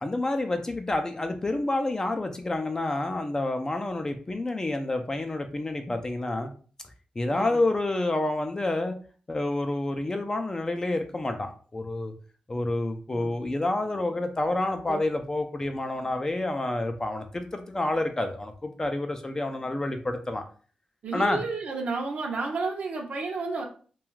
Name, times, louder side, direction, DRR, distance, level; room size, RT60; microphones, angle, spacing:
voice 1, 0.0-6.5 7.2-9.0 9.3-12.1 12.5-20.4 21.1-21.4, left 2 dB, 25° left, 6 dB, 0.3 m, -28 dB
voice 2, 7.3-7.6 13.1-13.3 14.9-15.0 21.0-23.7, right 3 dB, 70° right, 0 dB, 0.6 m, -31 dB
2.3 x 2.2 x 3.1 m, 0.41 s
cardioid pair, 90°, 3 cm